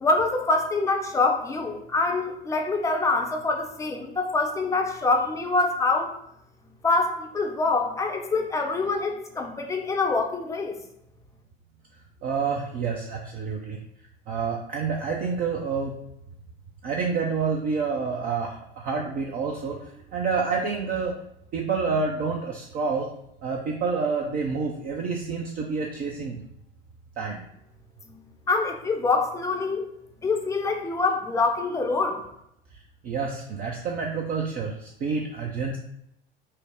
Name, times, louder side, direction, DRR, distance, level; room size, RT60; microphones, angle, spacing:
voice 1, 0.0-6.1 6.8-10.8 28.1-28.2 28.5-29.9 30.2-32.2, left 3 dB, 10° left, 2 dB, 0.6 m, -25 dB
voice 2, 12.2-13.8 14.3-15.9 16.8-21.2 21.5-23.1 23.4-26.4 27.2-27.4 33.0-35.8, right 5 dB, 30° right, 0 dB, 0.5 m, -28 dB
5.4 x 2.0 x 3.6 m, 0.77 s
figure-of-eight pair, 75°, 29 cm